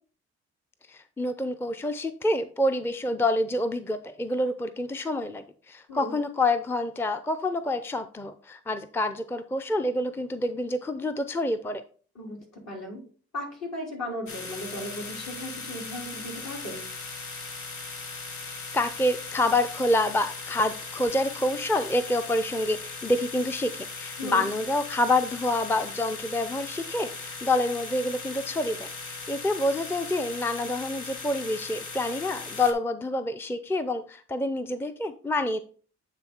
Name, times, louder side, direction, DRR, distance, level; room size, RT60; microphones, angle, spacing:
voice 1, 0.9-11.8 18.5-35.6, left 1 dB, 10° left, 9 dB, 0.5 m, -27 dB
voice 2, 12.2-13.0 13.3-16.9 24.2-24.4, left 1 dB, 60° left, -2 dB, 3.6 m, -36 dB
sound 1, 14.3-32.7, left 4 dB, 85° left, 1.1 m, -38 dB
8.7 x 3.3 x 4.3 m, 0.42 s
supercardioid pair, 60°, 29 cm